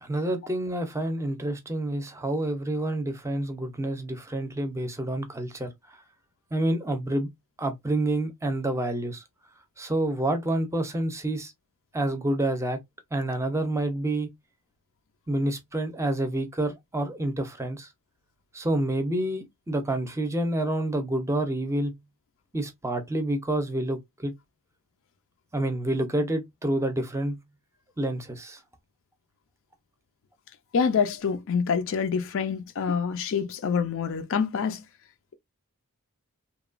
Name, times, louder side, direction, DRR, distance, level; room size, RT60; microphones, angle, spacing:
voice 1, 0.0-6.0 6.5-7.3 7.6-9.2 9.8-11.5 11.9-12.8 13.1-14.3 15.3-17.9 18.5-21.9 22.5-24.3 25.5-27.4 28.0-28.6, right 1 dB, 15° right, 0.6 m, -28 dB
voice 2, 30.7-34.8, left 6 dB, 60° left, 0.4 m, -26 dB
2.9 x 2.3 x 2.4 m
head